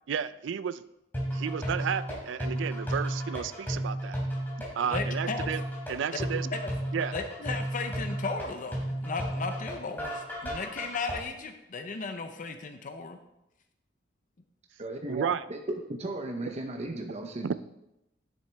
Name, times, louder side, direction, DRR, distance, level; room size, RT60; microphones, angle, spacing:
voice 1, 0.1-0.8 1.3-4.2 4.7-5.6 5.9-6.5 6.9-7.1 15.1-15.4 16.5-16.6 17.4-17.5, right 7 dB, 80° right, 15 dB, 0.4 m, -32 dB
sound 1, 1.1-11.1, right 1 dB, 10° left, 3.0 m, -33 dB
voice 2, 4.9-5.5 6.1-6.3 6.5-6.7 7.1-13.2, left 4 dB, 45° left, 7 dB, 0.6 m, -35 dB
voice 3, 14.8-17.5, right 1 dB, 35° right, 3 dB, 0.7 m, -36 dB
10.0 x 7.1 x 3.4 m, 0.88 s
head